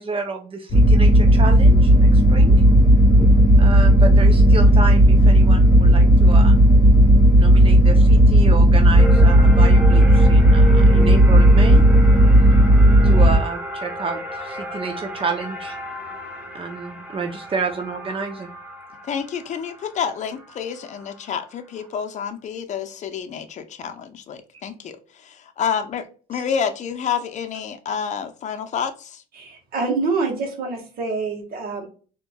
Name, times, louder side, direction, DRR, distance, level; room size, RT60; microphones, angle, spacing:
voice 1, 0.0-2.6 3.6-6.6 7.3-11.8 13.0-15.8 16.5-18.5 26.3-26.4, right 4 dB, 35° right, 0.6 m, -30 dB
sound 1, 0.7-13.4, right 1 dB, 20° left, 1.3 m, -13 dB
sound 2, 9.0-21.6, right 1 dB, 5° right, 1.2 m, -33 dB
voice 2, 19.1-29.2, left 7 dB, 45° left, 0.6 m, -29 dB
voice 3, 29.3-31.9, right 4 dB, 60° right, 1.5 m, -26 dB
4.4 x 2.9 x 2.3 m
cardioid pair, 110°, 17 cm